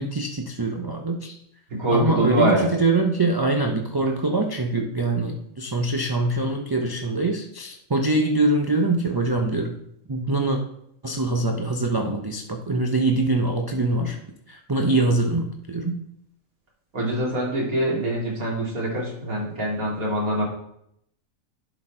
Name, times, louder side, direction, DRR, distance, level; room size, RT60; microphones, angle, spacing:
voice 1, 0.0-1.4 1.9-9.8 10.1-10.6 11.0-14.2 14.5-16.0, right 2 dB, 35° right, 2 dB, 0.3 m, -24 dB
voice 2, 1.7-2.7 16.9-20.4, right 1 dB, 85° right, -3 dB, 2.8 m, -24 dB
11.0 x 4.2 x 4.4 m, 0.73 s
omnidirectional pair, 1.5 m